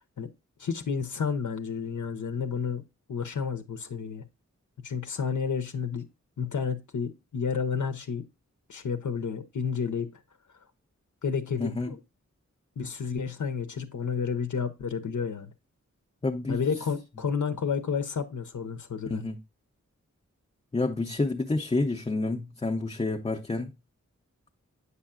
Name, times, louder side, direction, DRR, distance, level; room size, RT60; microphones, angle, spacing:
voice 1, 0.6-2.8 3.1-4.2 4.8-6.1 6.4-8.2 8.7-10.2 11.2-12.0 12.8-15.5 16.5-19.2, left 6 dB, 80° left, 0.7 m, -31 dB
voice 2, 11.6-11.9 16.2-16.6 19.1-19.4 20.7-23.7, left 2 dB, 20° left, 0.5 m, -29 dB
8.1 x 5.5 x 2.3 m
wide cardioid pair, 80°, 30 cm